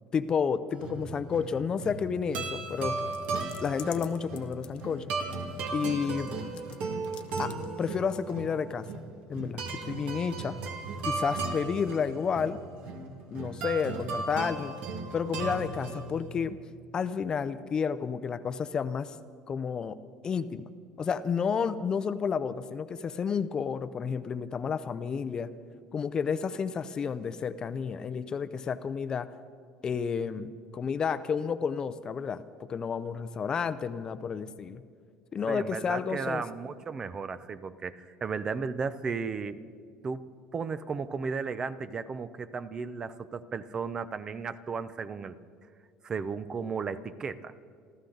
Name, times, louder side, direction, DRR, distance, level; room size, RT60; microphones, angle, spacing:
voice 1, 0.1-3.0 3.6-5.1 5.7-6.3 7.4-8.9 9.3-10.6 11.1-12.6 13.3-14.8 15.1-16.6 16.9-19.1 19.5-20.7 21.0-25.5 25.9-29.3 29.8-34.8 35.3-36.4, left 6 dB, 30° left, 13 dB, 0.6 m, -31 dB
sound 1, 0.7-16.3, right 3 dB, 60° right, 2.1 m, -36 dB
sound 2, 3.1-5.4 5.8-6.8 7.0-7.7 8.1-8.2, left 11 dB, 50° left, 1.1 m, -47 dB
voice 2, 35.5-39.6 40.0-45.4 46.0-47.5, right 5 dB, 30° right, 14 dB, 0.6 m, -35 dB
27.5 x 13.0 x 4.0 m, 2.2 s
cardioid pair, 125°, 3 cm